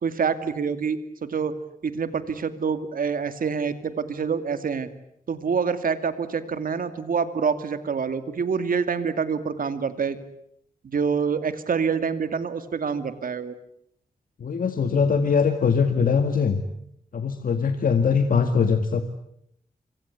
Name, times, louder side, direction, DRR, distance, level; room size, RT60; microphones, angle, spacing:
voice 1, 0.0-1.5 1.8-4.9 5.3-10.2 10.8-13.6, right 6 dB, 75° right, 11 dB, 2.4 m, -26 dB
voice 2, 14.4-16.6 17.1-19.0, left 6 dB, 70° left, 7 dB, 2.0 m, -21 dB
26.0 x 25.5 x 8.3 m, 0.72 s
wide cardioid pair, 125°, 15 cm